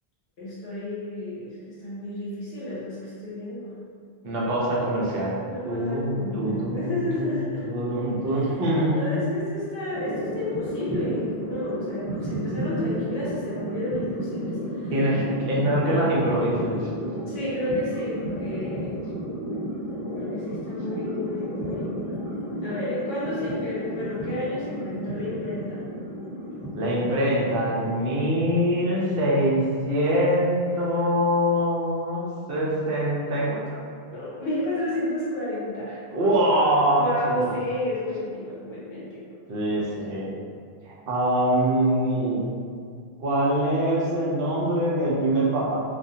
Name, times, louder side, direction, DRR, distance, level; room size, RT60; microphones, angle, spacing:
voice 1, 0.4-3.8 5.4-7.7 8.3-8.6 8.9-14.9 17.2-18.9 20.1-21.9 22.6-25.9 34.0-36.0 36.9-39.3, left 1 dB, 70° left, -8 dB, 0.9 m, -31 dB
voice 2, 4.2-5.4 5.6-9.2 14.9-16.8 26.7-33.8 36.1-37.5 39.5-40.3 40.9-42.5 43.2-45.8, right 1 dB, 65° right, -5 dB, 0.8 m, -24 dB
sound 1, 9.9-29.4, equal, 20° left, 1.1 m, -33 dB
2.4 x 2.3 x 2.7 m, 2.2 s
omnidirectional pair, 1.1 m